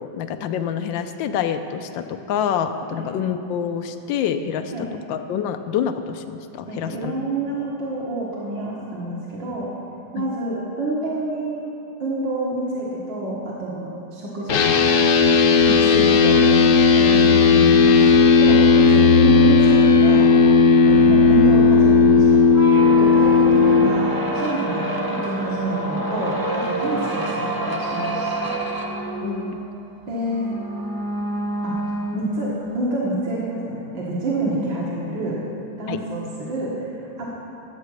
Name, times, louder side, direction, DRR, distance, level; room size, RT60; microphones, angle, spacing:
voice 1, 0.0-7.1 10.2-10.3 29.2-29.7 35.9-36.0, left 8 dB, 90° left, 9 dB, 1.4 m, -27 dB
voice 2, 6.7-9.7 10.1-11.6 12.0-14.6 15.6-16.4 16.9-20.6 20.8-22.4 22.9-28.5 30.1-30.6 31.6-31.8 32.1-35.4 35.8-37.3, right 2 dB, 85° right, -5 dB, 2.3 m, -28 dB
sound 1, 14.5-23.9, left 4 dB, 60° left, 0.9 m, -14 dB
sound 2, 22.4-32.8, right 2 dB, 20° right, 0.6 m, -27 dB
13.5 x 8.4 x 6.4 m, 2.8 s
omnidirectional pair, 2.0 m